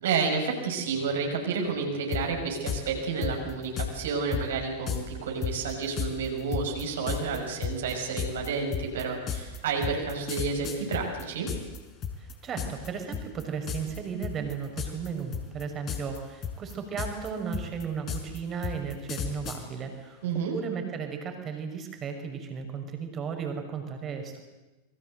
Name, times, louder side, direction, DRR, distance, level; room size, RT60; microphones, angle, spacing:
voice 1, 0.0-11.5 20.2-20.5, right 5 dB, 60° right, 1 dB, 6.5 m, -30 dB
sound 1, 2.1-2.2 2.7-2.8 3.2-3.9 4.3-4.4 4.9-5.0 5.4-11.8 12.0-12.9 13.1-13.4 13.7-14.0 14.2-15.1 15.3-16.2 16.4-19.6, left 8 dB, 30° left, 4.8 m, -32 dB
voice 2, 12.2-20.2 20.5-24.4, right 6 dB, 25° right, 5 dB, 6.0 m, -35 dB
28.0 x 23.0 x 7.9 m, 1.1 s
figure-of-eight pair, 90°, 0 cm